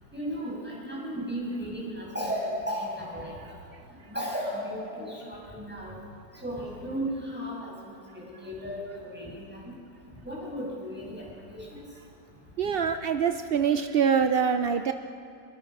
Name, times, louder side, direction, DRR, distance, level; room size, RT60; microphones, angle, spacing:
voice 1, 0.1-3.4 4.1-5.9 6.3-9.7 10.2-11.8, equal, 5° right, -5 dB, 7.4 m, -35 dB
voice 2, 12.6-14.9, right 7 dB, 55° right, 7 dB, 0.6 m, -24 dB
26.5 x 22.5 x 6.0 m, 2.6 s
omnidirectional pair, 1.8 m